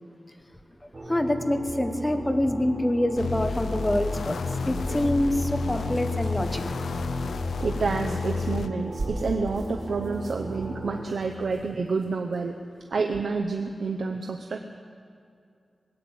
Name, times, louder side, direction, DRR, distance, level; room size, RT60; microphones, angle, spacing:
sound 1, 0.9-11.0, right 1 dB, 35° right, 5.1 m, -37 dB
voice 1, 1.1-4.4 4.6-6.8, left 1 dB, 15° left, 7 dB, 1.0 m, -26 dB
sound 2, 3.2-8.7, left 5 dB, 90° left, 0.5 m, -31 dB
sound 3, 4.7-6.8 8.3-8.4 8.8-12.4 12.9-13.0, right 1 dB, 50° right, 4.1 m, -39 dB
voice 2, 7.6-12.6 12.9-14.6, right 4 dB, 70° right, 3 dB, 0.7 m, -29 dB
20.0 x 9.2 x 7.8 m, 2.4 s
wide cardioid pair, 140°, 0 cm